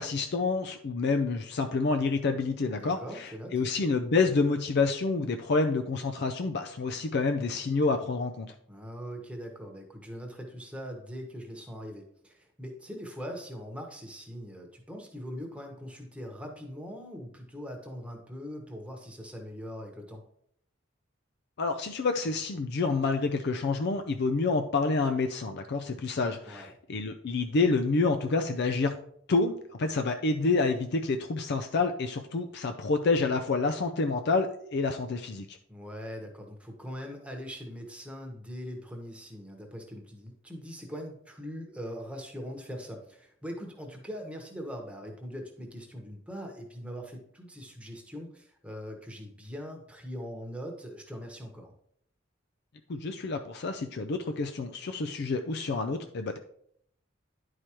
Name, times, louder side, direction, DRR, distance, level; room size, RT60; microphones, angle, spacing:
voice 1, 0.0-8.5 21.6-29.0 29.3-35.6 52.9-56.4, left 3 dB, 60° left, 7 dB, 0.4 m, -28 dB
voice 2, 2.7-3.5 8.7-20.2 26.5-26.7 35.7-51.7, equal, 5° right, 2 dB, 1.1 m, -41 dB
10.5 x 4.8 x 2.9 m, 0.67 s
head